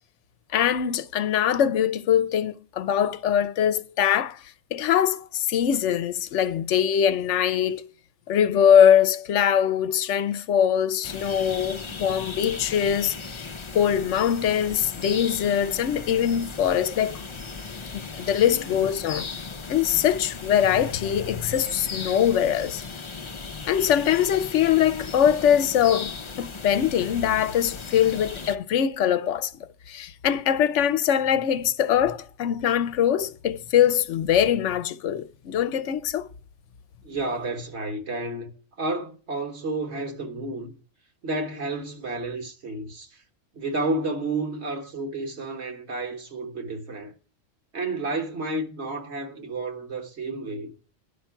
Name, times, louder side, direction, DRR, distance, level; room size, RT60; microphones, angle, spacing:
voice 1, 0.5-4.4 4.7-7.8 8.3-13.5 13.7-17.2 17.9-19.3 19.7-22.8 23.7-29.5 29.9-36.3, left 9 dB, 75° left, 1.0 m, -22 dB
sound 1, 11.0-28.6, left 4 dB, 35° left, 0.5 m, -37 dB
voice 2, 37.0-38.5 38.8-40.7 41.2-43.2 43.6-47.1 47.7-50.7, right 2 dB, 60° right, 1.8 m, -31 dB
11.0 x 5.6 x 5.8 m
omnidirectional pair, 1.3 m